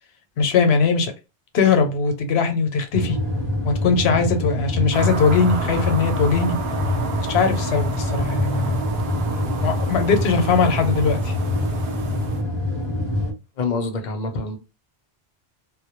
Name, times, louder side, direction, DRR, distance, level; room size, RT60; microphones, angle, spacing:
voice 1, 0.4-1.1 1.5-3.2 3.6-6.6 7.3-8.8 9.6-11.3, left 5 dB, 85° left, 0.8 m, -20 dB
sound 1, 2.9-13.3, left 1 dB, 30° right, 0.7 m, -25 dB
sound 2, 4.9-12.4, right 3 dB, 75° right, 0.8 m, -33 dB
voice 2, 13.6-14.6, left 3 dB, 55° left, 0.6 m, -26 dB
2.2 x 2.1 x 2.8 m
omnidirectional pair, 1.1 m